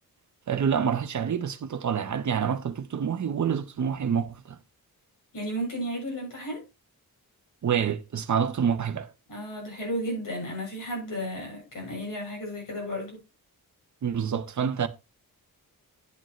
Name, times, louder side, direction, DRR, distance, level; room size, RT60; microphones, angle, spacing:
voice 1, 0.5-4.6 7.6-9.1 14.0-14.9, right 7 dB, 50° right, 0.9 m, -27 dB
voice 2, 5.3-6.6 9.3-13.2, equal, 60° left, 7.2 m, -33 dB
10.5 x 8.9 x 3.1 m
wide cardioid pair, 180°, 37 cm